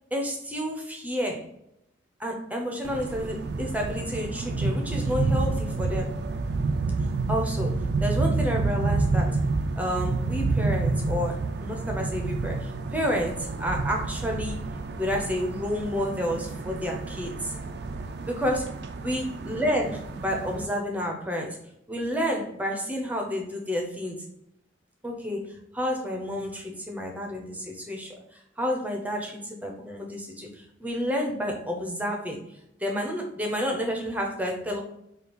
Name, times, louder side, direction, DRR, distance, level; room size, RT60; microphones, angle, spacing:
voice 1, 0.1-1.5 2.2-6.2 7.3-9.4 9.8-14.6 15.0-17.6 18.3-18.7 19.0-21.6 21.9-24.2 25.0-34.8, equal, 10° right, 1 dB, 0.6 m, -30 dB
sound 1, 2.8-20.7, right 3 dB, 55° right, 0.3 m, -29 dB
5.0 x 2.4 x 3.0 m, 0.79 s
head